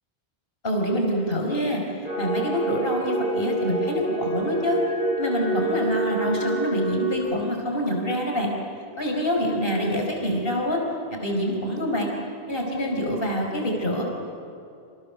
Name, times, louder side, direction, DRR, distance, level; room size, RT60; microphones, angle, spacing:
voice 1, 0.6-1.8 2.2-4.8 5.2-8.5 9.0-10.8 11.2-12.1 12.5-14.0, equal, 60° left, 0 dB, 5.0 m, -26 dB
sound 1, 2.0-7.1, right 1 dB, 45° right, 7.5 m, -27 dB
29.0 x 27.5 x 7.0 m, 2.5 s
omnidirectional pair, 1.1 m